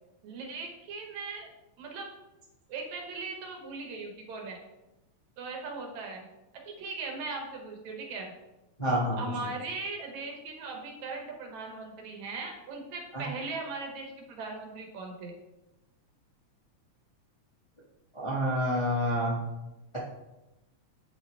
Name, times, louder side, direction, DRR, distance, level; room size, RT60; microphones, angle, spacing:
voice 1, 0.2-1.5 1.8-2.1 2.7-4.6 5.4-6.3 6.7-8.3 9.2-15.3, right 3 dB, 75° right, 1 dB, 2.4 m, -39 dB
voice 2, 8.8-9.2 13.1-13.2 18.1-19.4, equal, 30° left, -7 dB, 0.5 m, -28 dB
8.3 x 5.1 x 3.3 m, 0.99 s
omnidirectional pair, 3.3 m